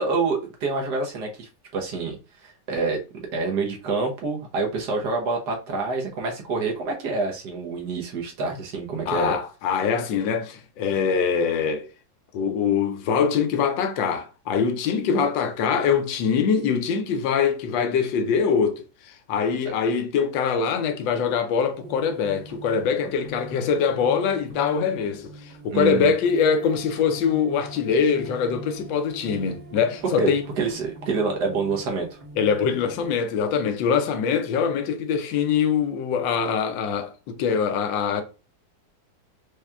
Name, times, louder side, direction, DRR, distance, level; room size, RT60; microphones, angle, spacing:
voice 1, 0.0-2.2 2.4-3.0 3.3-9.4 25.7-26.1 30.0-32.2, right 4 dB, 65° right, 1.4 m, -27 dB
voice 2, 9.1-11.9 12.3-30.4 32.4-38.2, left 6 dB, 80° left, 1.3 m, -23 dB
sound 1, 21.8-33.1, right 1 dB, 40° right, 1.7 m, -42 dB
4.8 x 2.8 x 2.2 m
omnidirectional pair, 2.0 m